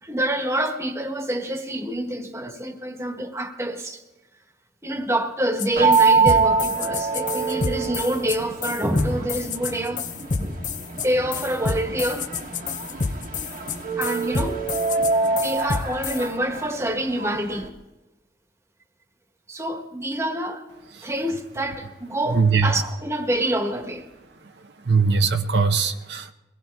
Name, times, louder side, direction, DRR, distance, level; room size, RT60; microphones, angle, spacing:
voice 1, 0.0-4.0 4.8-10.0 10.4-10.6 11.0-12.3 14.0-14.6 15.2-17.7 19.5-20.6 21.0-24.1, right 1 dB, 15° right, 1.3 m, -27 dB
sound 1, 5.6-5.7 5.9-16.2, left 4 dB, 45° left, 0.7 m, -29 dB
sound 2, 5.8-17.7, right 4 dB, 50° right, 1.3 m, -25 dB
voice 2, 22.3-22.7 24.9-26.3, right 4 dB, 75° right, 0.7 m, -20 dB
23.0 x 18.0 x 3.5 m
head